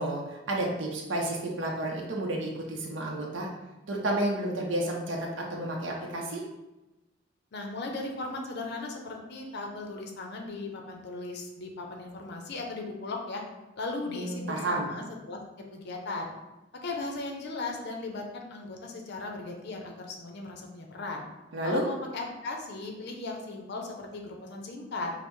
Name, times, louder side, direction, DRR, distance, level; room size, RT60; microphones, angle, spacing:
voice 1, 0.0-3.5 3.9-6.4 14.1-14.9 21.5-21.9, right 1 dB, 70° right, -1 dB, 0.6 m, -31 dB
voice 2, 7.5-13.4 13.8-15.4 15.7-16.3 16.8-21.2 21.6-25.1, left 3 dB, 60° left, 2 dB, 0.5 m, -37 dB
5.3 x 2.0 x 3.0 m, 1.0 s
head